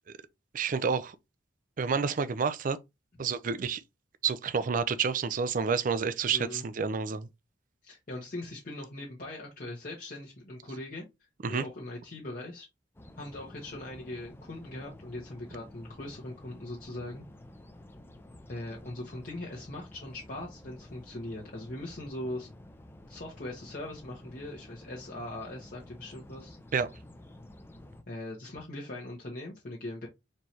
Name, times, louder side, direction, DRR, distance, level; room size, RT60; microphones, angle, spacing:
voice 1, 0.5-1.2 1.8-2.8 3.2-3.8 4.2-7.3 11.4-11.6 26.7-26.9, right 5 dB, 45° right, 0.4 m, -29 dB
voice 2, 6.3-6.6 7.8-12.7 13.2-17.2 18.5-22.5 23.1-26.6 28.1-30.1, left 1 dB, 50° left, 1.0 m, -40 dB
sound 1, 12.9-28.0, left 1 dB, 10° left, 0.5 m, -51 dB
4.4 x 3.2 x 2.8 m
head